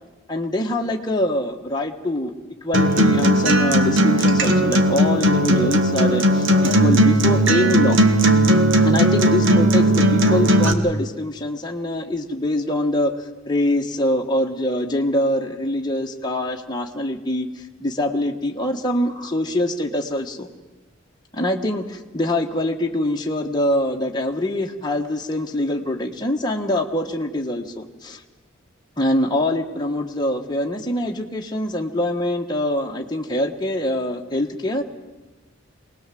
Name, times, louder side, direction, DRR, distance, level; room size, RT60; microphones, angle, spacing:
voice 1, 0.3-2.3 2.6-8.0 8.8-13.1 13.5-20.5 21.3-28.2 29.0-34.8, left 1 dB, 20° left, 1 dB, 1.4 m, -24 dB
Acoustic guitar, 2.7-10.7, right 1 dB, 65° right, 1.6 m, -17 dB
23.5 x 19.0 x 7.7 m, 1.1 s
head